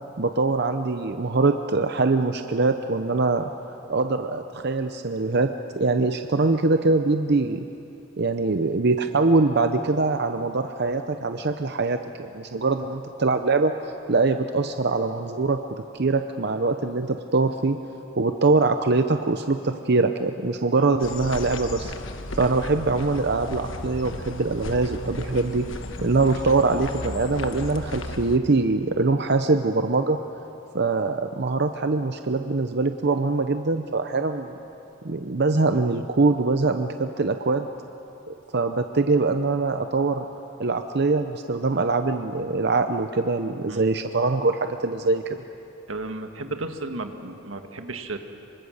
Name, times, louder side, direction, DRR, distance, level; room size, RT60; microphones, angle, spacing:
voice 1, 0.2-3.4 3.9-5.5 5.8-7.7 8.2-13.7 14.1-15.6 15.9-17.8 18.2-21.9 22.3-25.7 26.0-30.2 30.7-34.5 35.0-37.7 38.3-40.2 40.6-45.4, right 3 dB, 55° right, 7 dB, 0.7 m, -23 dB
sound 1, 21.0-28.4, left 2 dB, 75° left, 1.3 m, -35 dB
voice 2, 45.9-48.2, right 2 dB, 90° right, 5 dB, 1.8 m, -33 dB
26.5 x 24.5 x 6.6 m, 2.8 s
head